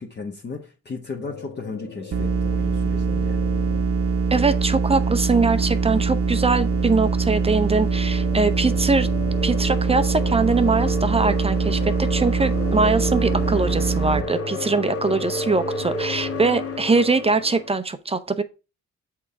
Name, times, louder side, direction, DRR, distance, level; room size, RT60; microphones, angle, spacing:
voice 1, 0.0-3.4, left 4 dB, 35° left, 1.2 m, -35 dB
sound 1, 1.2-17.7, left 2 dB, 55° left, 1.9 m, -33 dB
sound 2, 2.1-14.2, right 5 dB, 50° right, 0.9 m, -23 dB
voice 2, 4.3-9.1 9.4-18.4, right 3 dB, 20° right, 0.6 m, -22 dB
6.3 x 3.8 x 5.6 m
cardioid pair, 90°, 30 cm